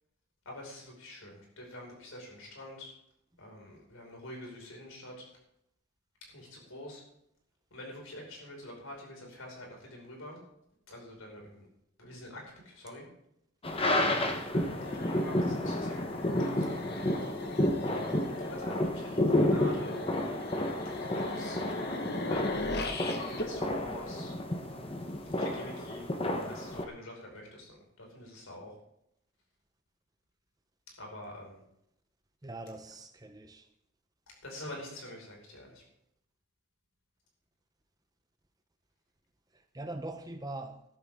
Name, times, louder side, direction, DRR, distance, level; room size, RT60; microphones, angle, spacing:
voice 1, 0.5-2.9 3.4-5.3 6.3-7.0 7.7-10.4 10.9-11.7 12.0-13.1 14.1-17.4 18.4-20.0 21.0-21.6 22.3-22.7 23.2-24.3 25.4-26.1 26.4-28.8 31.0-31.6 34.4-35.8, left 1 dB, 70° left, -1 dB, 5.4 m, -46 dB
sound 1, 13.6-26.9, left 1 dB, 25° left, 1.0 m, -31 dB
sound 2, 14.6-24.9, left 2 dB, 50° left, 1.4 m, -40 dB
voice 2, 22.3-22.7 32.4-33.7 39.5-40.8, right 2 dB, 15° right, 7 dB, 0.8 m, -42 dB
14.0 x 13.0 x 3.7 m, 0.76 s
head